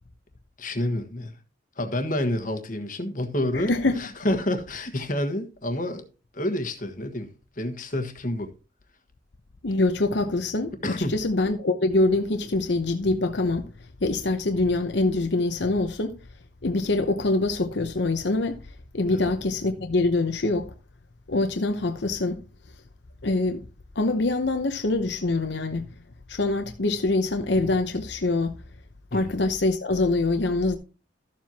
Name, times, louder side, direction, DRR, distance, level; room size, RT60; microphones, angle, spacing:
voice 1, 0.6-1.3 1.8-6.0 6.3-8.5 10.8-11.2 19.1-19.2 29.1-29.3, left 1 dB, 40° left, 1.4 m, -29 dB
voice 2, 3.5-4.0 9.6-13.7 14.0-16.1 16.6-18.6 18.9-20.7 21.3-22.4 23.2-23.6 24.0-25.9 26.3-28.6 29.1-30.8, left 2 dB, 60° left, 0.8 m, -24 dB
13.0 x 7.5 x 2.9 m
head